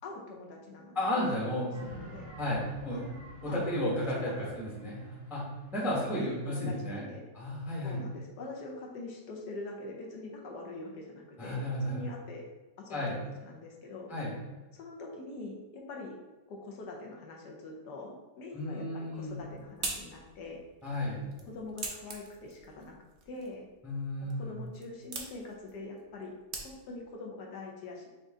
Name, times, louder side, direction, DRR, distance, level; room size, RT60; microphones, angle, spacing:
voice 1, 0.0-1.0 1.4-1.5 1.8-2.3 2.9-3.2 3.4-3.6 4.1-4.5 5.8-7.2 7.8-12.4 12.8-14.1 14.7-16.2 16.5-20.6 21.5-22.9 23.3-23.7 24.4-26.3 26.6-28.1, left 2 dB, 70° left, 0 dB, 1.3 m, -44 dB
voice 2, 0.9-1.9 2.4-3.0 3.4-5.4 5.7-7.0 7.3-8.0 11.4-12.0 12.9-13.1 14.1-14.3 18.5-19.4 20.8-21.2 23.8-24.6, left 1 dB, ahead, -5 dB, 0.7 m, -33 dB
sound 1, 1.7-6.9, equal, 85° right, 2.0 m, -50 dB
sound 2, 19.1-27.1, right 3 dB, 60° right, 0.7 m, -44 dB
5.4 x 2.6 x 3.5 m, 1.2 s
omnidirectional pair, 1.9 m